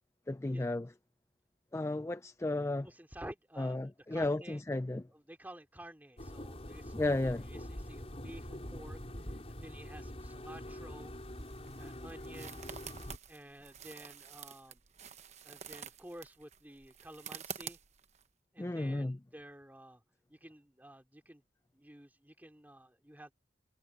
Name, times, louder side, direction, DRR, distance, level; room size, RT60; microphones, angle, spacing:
voice 1, 0.3-0.9 1.7-2.9 3.6-5.0 6.9-7.5 18.6-19.2, left 2 dB, 15° left, 0.4 m, -33 dB
voice 2, 2.8-4.6 5.1-11.1 11.8-12.8 13.3-14.8 15.4-17.8 18.5-20.0 20.3-21.4 21.7-23.3, right 1 dB, 10° right, 2.7 m, -52 dB
sound 1, 6.2-13.2, left 1 dB, 35° left, 5.3 m, -45 dB
sound 2, 11.0-18.2, right 7 dB, 40° right, 1.1 m, -49 dB
head